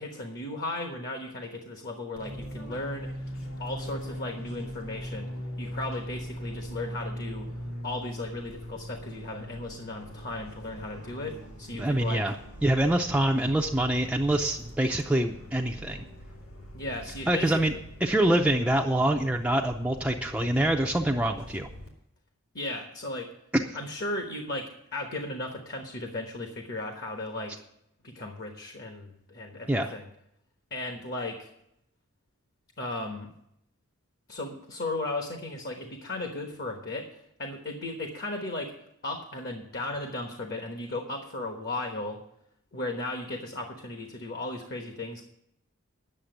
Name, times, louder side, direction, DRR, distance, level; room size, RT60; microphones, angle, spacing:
voice 1, 0.0-5.3 5.6-7.5 7.8-12.3 16.7-17.6 22.5-23.3 23.7-27.5 28.0-30.1 30.7-31.5 32.8-33.3 34.3-38.7 39.0-42.2 42.7-45.2, left 2 dB, 50° left, 4 dB, 1.2 m, -36 dB
Fixed-wing aircraft airplane, 2.1-21.9, equal, 80° left, 2.8 m, -41 dB
voice 2, 11.8-12.3 12.6-16.0 17.3-17.7 18.0-21.7 23.5-23.6 29.7-29.9, right 1 dB, 5° right, 2 dB, 0.5 m, -25 dB
10.0 x 6.8 x 7.9 m, 0.77 s
head